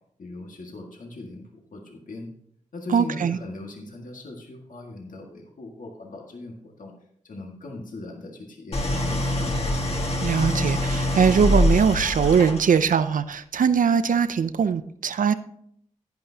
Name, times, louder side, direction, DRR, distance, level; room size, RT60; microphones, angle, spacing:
voice 1, 0.2-1.4 1.7-2.3 2.7-6.9 7.2-9.7, left 2 dB, 80° left, 0 dB, 1.8 m, -39 dB
voice 2, 2.9-3.4 10.2-15.3, right 6 dB, 85° right, 12 dB, 0.5 m, -21 dB
Idling, 8.7-12.9, left 1 dB, 50° left, 1.6 m, -24 dB
11.0 x 10.5 x 2.8 m, 0.68 s
wide cardioid pair, 115°, 13 cm